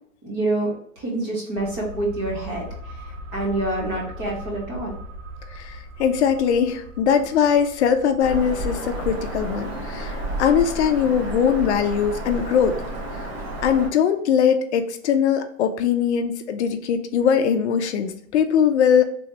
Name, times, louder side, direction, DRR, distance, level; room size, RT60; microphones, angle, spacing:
voice 1, 0.2-5.0, right 2 dB, 15° right, -2 dB, 0.5 m, -27 dB
sound 1, 1.6-12.9 13.2-13.3, equal, 70° right, 0.7 m, -41 dB
voice 2, 5.5-12.8 13.6-19.0, left 7 dB, 60° left, 8 dB, 0.5 m, -21 dB
Bird vocalization bird call bird song, 8.2-13.9, right 1 dB, 50° right, 1.2 m, -31 dB
3.4 x 2.6 x 3.0 m, 0.65 s
supercardioid pair, 165°, 40 cm